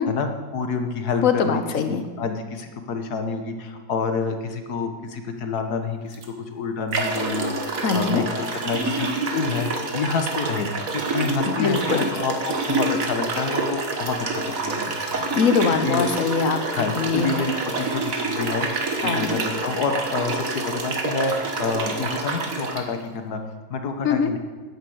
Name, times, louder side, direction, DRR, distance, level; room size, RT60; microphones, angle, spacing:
voice 1, 0.1-1.6 1.9-6.2 6.5-15.3 15.8-16.1 16.7-23.4 23.7-24.4, left 4 dB, 80° left, 6 dB, 1.8 m, -28 dB
voice 2, 1.2-2.0 7.8-8.2 11.5-12.1 15.3-17.3 19.0-19.4 24.0-24.3, left 6 dB, 60° left, 8 dB, 1.3 m, -22 dB
sound 1, 6.1-6.3 6.9-22.8, right 3 dB, 60° right, 1.8 m, -27 dB
10.5 x 9.9 x 8.0 m, 1.4 s
omnidirectional pair, 1.6 m